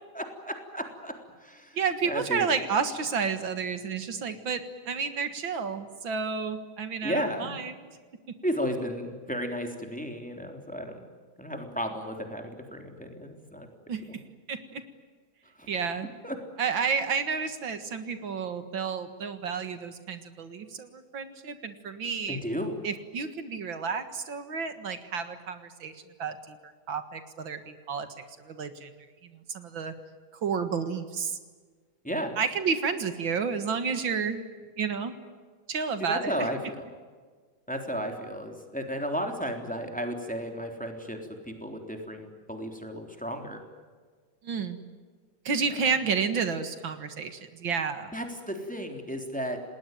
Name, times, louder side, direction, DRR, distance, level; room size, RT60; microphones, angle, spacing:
voice 1, 0.1-1.1 1.4-1.8 2.0-2.5 7.0-7.5 8.4-11.0 11.4-13.7 14.1-14.2 15.6-15.7 16.2-16.4 22.3-22.8 32.0-32.3 36.0-36.8 37.7-43.6 48.1-49.6, equal, 5° left, 3 dB, 3.5 m, -33 dB
voice 2, 1.7-7.7 13.9-14.0 14.5-14.8 15.7-16.1 16.6-22.4 22.8-28.1 28.4-28.9 29.2-29.9 30.4-31.4 32.4-34.5 34.8-35.1 35.7-36.5 44.4-44.8 45.5-48.1, right 5 dB, 75° right, 9 dB, 2.4 m, -31 dB
29.0 x 20.0 x 9.3 m, 1.5 s
omnidirectional pair, 2.1 m